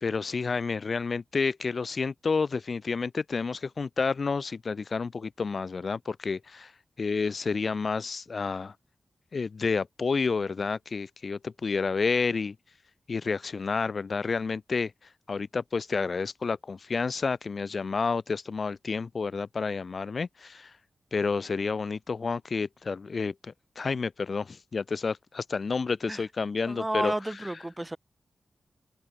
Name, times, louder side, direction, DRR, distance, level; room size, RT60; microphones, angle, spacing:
voice 1, 0.0-6.7 7.0-8.7 9.3-12.6 13.1-14.9 15.3-20.7 21.1-27.1, left 4 dB, 50° left, 0.8 m, -30 dB
voice 2, 26.6-28.0, right 1 dB, 15° right, 0.9 m, -31 dB
wide cardioid pair, 130°, 0 cm